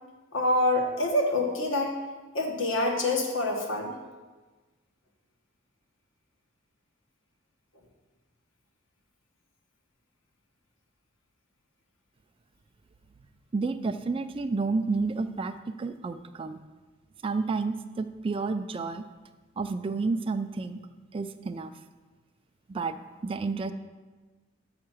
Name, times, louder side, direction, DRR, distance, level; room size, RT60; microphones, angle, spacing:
voice 1, 0.3-1.9 2.3-3.9, left 1 dB, 70° left, 2 dB, 1.4 m, -26 dB
voice 2, 13.5-16.6 17.2-19.1 19.6-20.9 21.1-21.7 22.7-23.0 23.2-23.7, right 4 dB, 25° right, 8 dB, 0.3 m, -30 dB
6.4 x 5.8 x 6.2 m, 1.3 s
head